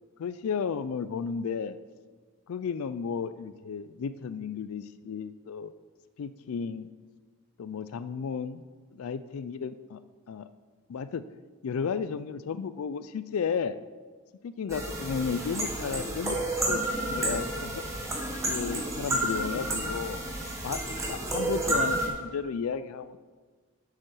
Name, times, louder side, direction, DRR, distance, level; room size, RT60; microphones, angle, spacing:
voice 1, 0.2-1.8 2.5-5.7 6.2-6.9 7.6-8.6 8.9-10.0 10.3-10.5 10.9-11.2 11.6-13.8 14.6-17.8 18.4-20.2 20.6-23.2, left 6 dB, 85° left, 13 dB, 0.4 m, -33 dB
sound 1, 14.7-22.1, right 1 dB, 15° right, 1.3 m, -30 dB
7.5 x 7.3 x 6.2 m, 1.4 s
head